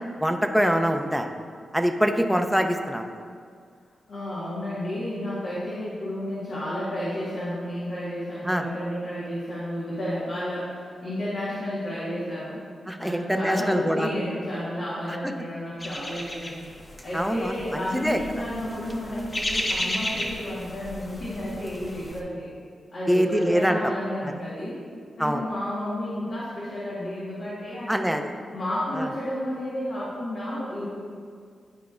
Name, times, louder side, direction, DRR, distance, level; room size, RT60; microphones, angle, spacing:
voice 1, 0.2-1.3 1.7-3.1 8.4-8.6 12.9-14.1 15.2-15.3 17.1-18.2 23.1-23.8 25.2-25.4 27.9-28.3 29.0-29.1, equal, ahead, 5 dB, 0.6 m, -24 dB
voice 2, 4.1-12.6 13.0-16.6 17.0-22.5 22.9-24.8 25.2-28.2 28.5-30.9, left 1 dB, 75° left, -10 dB, 1.7 m, -31 dB
sound 1, 15.8-22.2, left 1 dB, 30° left, 1.0 m, -34 dB
11.5 x 4.6 x 2.5 m, 2.1 s
cardioid pair, 55°, 0 cm